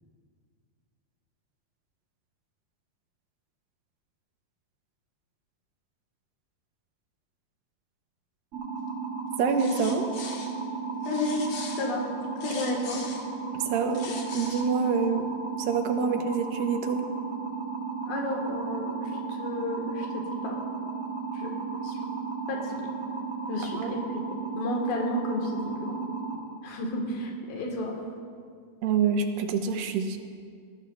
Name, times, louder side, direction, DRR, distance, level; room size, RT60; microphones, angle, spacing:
sound 1, 8.5-26.4, right 5 dB, 45° right, 1.4 m, -34 dB
voice 1, 9.4-10.0 13.7-15.3 15.6-17.0 23.8-23.9 28.8-30.2, right 5 dB, 85° right, 6 dB, 2.6 m, -26 dB
sound 2, 9.5-10.5 11.0-13.2 13.7-14.7, left 4 dB, 60° left, 2.2 m, -41 dB
voice 2, 11.1-11.4 11.8-12.0 12.4-13.0 15.9-16.1 18.1-20.6 21.3-21.5 21.8-22.1 22.5-22.8 23.5-25.9 26.6-28.0, left 2 dB, 85° left, 0 dB, 3.3 m, -32 dB
19.0 x 14.5 x 2.3 m, 2.1 s
omnidirectional pair, 4.0 m